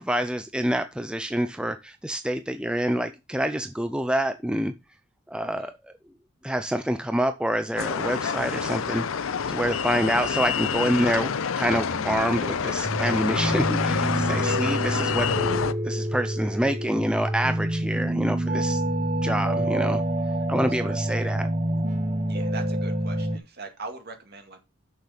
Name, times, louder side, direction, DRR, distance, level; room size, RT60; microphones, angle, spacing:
voice 1, 0.0-4.7 5.3-5.7 6.4-15.3 15.5-18.8 19.2-20.0 20.5-21.5, equal, 5° right, 0.5 m, -27 dB
sound 1, 7.8-15.7, left 6 dB, 85° left, 0.6 m, -27 dB
sound 2, 11.7-23.4, right 1 dB, 35° right, 1.1 m, -27 dB
voice 2, 14.4-14.9 20.7-21.0 22.3-24.6, right 3 dB, 50° right, 2.1 m, -41 dB
6.7 x 6.6 x 5.7 m
head